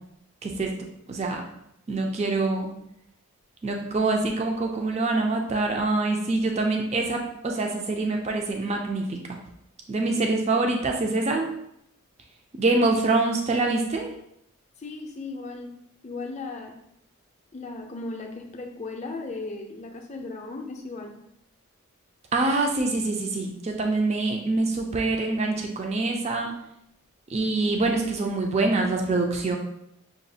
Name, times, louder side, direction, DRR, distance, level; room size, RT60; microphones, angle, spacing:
voice 1, 1.1-1.4 1.9-2.7 3.6-9.4 9.9-11.5 12.6-14.1 22.3-26.5 27.3-29.6, right 3 dB, 30° right, 2 dB, 0.4 m, -25 dB
voice 2, 14.8-15.7 16.0-16.8 17.5-21.2, left 3 dB, 30° left, 2 dB, 0.4 m, -36 dB
5.8 x 2.3 x 2.7 m, 0.78 s
head